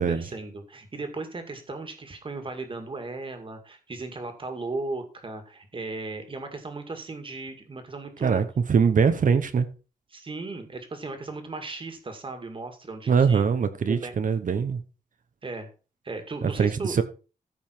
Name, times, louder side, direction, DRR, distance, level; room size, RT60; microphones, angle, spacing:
voice 1, 0.0-8.4 10.1-13.4 13.9-14.1 15.4-15.7 16.0-17.0, right 3 dB, 35° right, 2.1 m, -36 dB
voice 2, 8.2-9.7 13.1-14.8 16.4-17.0, right 6 dB, 60° right, 1.0 m, -22 dB
14.5 x 5.5 x 4.5 m
wide cardioid pair, 160°, 15 cm